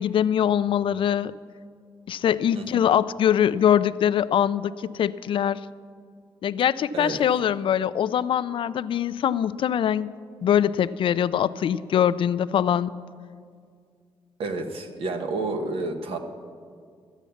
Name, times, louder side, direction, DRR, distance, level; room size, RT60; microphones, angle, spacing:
voice 1, 0.0-1.3 2.1-5.6 6.4-10.1 10.4-12.9, left 9 dB, 60° left, 16 dB, 0.4 m, -23 dB
voice 2, 14.4-16.2, right 3 dB, 70° right, 5 dB, 1.3 m, -30 dB
13.5 x 8.2 x 7.1 m, 2.1 s
cardioid pair, 90°, 10 cm